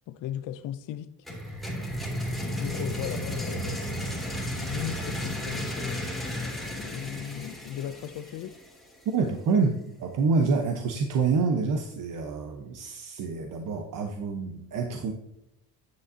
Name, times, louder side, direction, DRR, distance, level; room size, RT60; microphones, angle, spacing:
voice 1, 0.1-1.2 2.6-4.0 4.5-8.6, left 11 dB, 55° left, 0.5 m, -37 dB
sound 1, 1.2-9.0, equal, ahead, 2.5 m, -34 dB
voice 2, 9.1-9.7 10.0-15.1, right 4 dB, 55° right, 0.9 m, -27 dB
9.5 x 7.0 x 2.7 m
cardioid pair, 135°, 39 cm